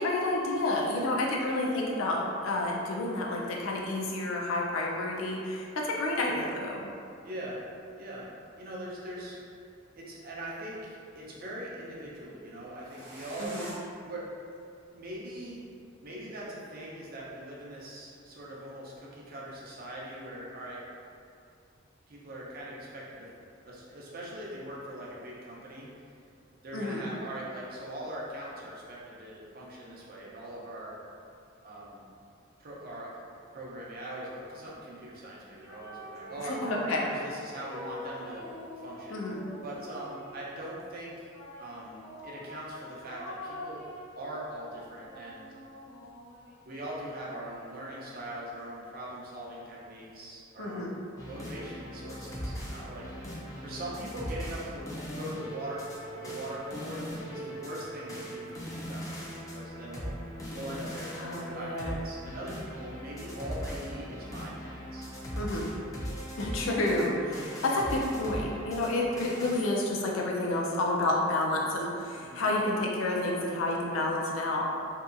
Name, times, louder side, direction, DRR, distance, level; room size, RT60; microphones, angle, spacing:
voice 1, 0.0-6.9 13.4-13.7 26.7-27.1 36.4-37.0 39.1-39.4 50.6-50.9 61.1-62.0 65.4-65.7 66.4-74.7, left 2 dB, 90° left, -2 dB, 0.4 m, -30 dB
voice 2, 7.2-7.6 8.0-8.3 8.6-9.4 9.9-13.6 14.0-14.3 14.9-15.6 16.0-20.8 22.1-23.3 23.6-25.9 26.6-31.0 31.6-32.0 32.6-33.3 33.5-38.5 38.8-39.2 39.6-41.3 41.6-43.8 44.2-45.5 46.6-51.0 51.3-53.1 53.6-60.2 60.5-65.5 72.2-72.5, right 1 dB, 50° right, -5 dB, 0.5 m, -41 dB
sound 1, 8.9-9.9 12.7-13.7, right 1 dB, 80° right, 0.8 m, -47 dB
sound 2, 35.6-37.0 37.5-40.5 41.3-44.2 44.7-48.3, left 1 dB, 50° left, 0.7 m, -45 dB
sound 3, 51.2-69.7, equal, 15° left, 0.4 m, -39 dB
2.7 x 2.3 x 2.4 m, 2.4 s
head